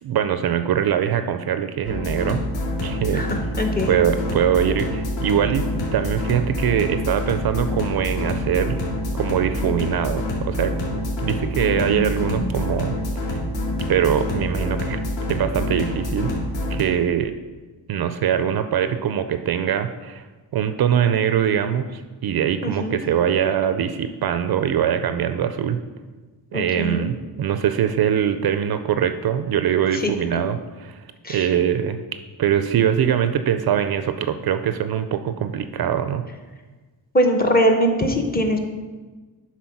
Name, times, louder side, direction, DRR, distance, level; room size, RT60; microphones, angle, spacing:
voice 1, 0.0-2.4 2.8-3.2 3.9-8.8 9.1-13.0 13.9-15.0 15.3-16.4 16.7-17.3 17.9-20.2 20.5-25.8 26.5-31.0 31.3-32.0 32.4-36.3, right 9 dB, 55° right, 10 dB, 0.5 m, -22 dB
sound 1, 1.9-16.8, left 1 dB, 70° left, 2.6 m, -26 dB
voice 2, 3.1-4.0 11.7-12.6 22.6-23.0 26.5-27.1 29.9-30.4 31.2-31.5 37.1-38.6, equal, 20° left, 3 dB, 0.7 m, -22 dB
10.5 x 4.2 x 5.9 m, 1.3 s
wide cardioid pair, 180°, 46 cm